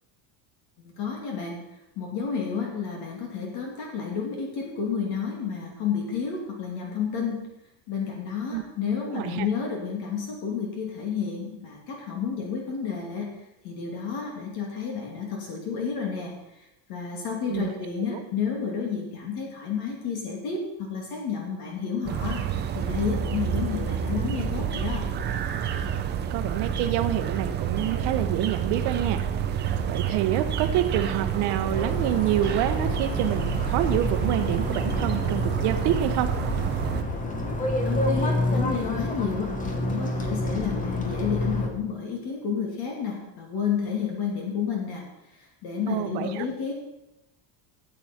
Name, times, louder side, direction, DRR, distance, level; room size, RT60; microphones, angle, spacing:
voice 1, 1.0-1.6 2.0-7.5 7.9-13.3 13.6-16.3 16.6-22.4 22.7-25.1 37.8-45.0 45.4-46.7, left 6 dB, 55° left, 0 dB, 2.5 m, -31 dB
voice 2, 9.1-9.5 17.5-17.7 18.1-18.2 26.3-29.3 29.9-36.3 45.9-46.5, right 11 dB, 55° right, 9 dB, 1.0 m, -27 dB
sound 1, 22.1-37.0, right 8 dB, 25° right, 0.5 m, -28 dB
sound 2, 31.7-41.7, left 2 dB, 15° left, 1.0 m, -29 dB
13.5 x 8.7 x 4.4 m, 0.89 s
cardioid pair, 175°, 47 cm